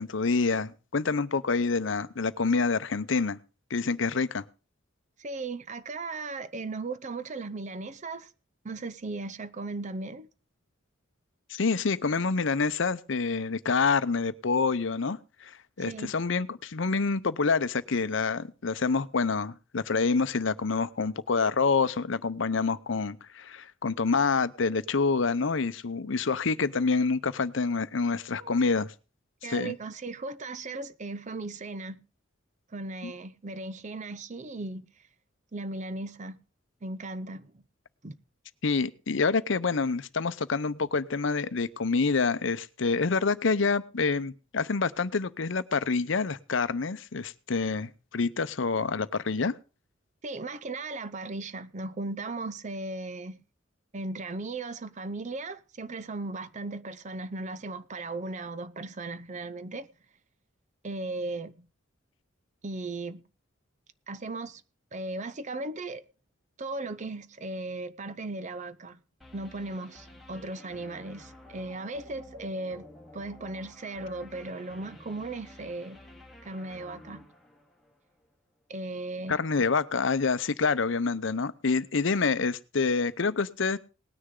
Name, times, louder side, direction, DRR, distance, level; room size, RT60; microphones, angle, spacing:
voice 1, 0.0-3.4 3.7-4.4 11.5-28.9 29.4-29.7 33.0-33.1 38.6-49.5 79.3-83.8, left 4 dB, 65° left, 0.7 m, -27 dB
voice 2, 5.2-8.3 8.6-10.3 15.8-16.1 28.4-28.6 29.4-32.0 32.7-34.9 35.5-36.4 36.8-37.6 38.0-38.2 50.2-53.4 53.9-59.9 60.8-61.7 62.6-63.2 64.1-64.6 64.9-66.0 66.6-69.0 69.3-72.9 73.1-76.0 76.4-77.2 78.7-79.4, right 2 dB, 35° right, 0.7 m, -37 dB
sound 1, 69.2-78.3, left 1 dB, ahead, 2.4 m, -51 dB
19.0 x 9.8 x 3.8 m
head